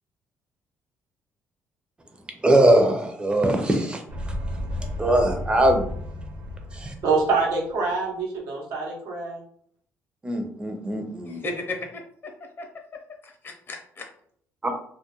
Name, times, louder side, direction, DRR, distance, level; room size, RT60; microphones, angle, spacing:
voice 1, 2.4-4.0 5.0-5.9 6.7-6.9 10.2-11.4 14.6-14.7, right 1 dB, 20° right, 0.6 m, -21 dB
sound 1, 4.1-7.6, left 1 dB, 70° right, 0.5 m, -33 dB
voice 2, 7.0-9.4, right 4 dB, 85° right, 0.8 m, -25 dB
voice 3, 11.3-12.7 13.2-14.1, left 2 dB, 40° left, 0.7 m, -35 dB
2.3 x 2.1 x 2.9 m
cardioid pair, 90°, 6 cm